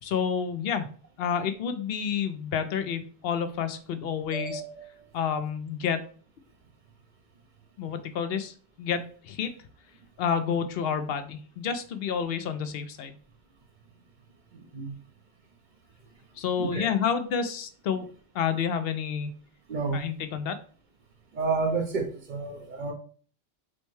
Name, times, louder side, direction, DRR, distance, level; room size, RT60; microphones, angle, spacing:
voice 1, 0.0-0.9 1.2-4.6 5.1-6.0 7.8-9.5 10.2-13.1 16.4-18.1 18.3-19.3 19.9-20.6, left 7 dB, 70° left, 10 dB, 0.8 m, -29 dB
voice 2, 4.3-4.9 14.5-15.0 16.6-16.9 19.7-20.1 21.3-22.9, right 4 dB, 50° right, 3 dB, 0.8 m, -30 dB
6.1 x 2.2 x 3.1 m, 0.43 s
omnidirectional pair, 1.1 m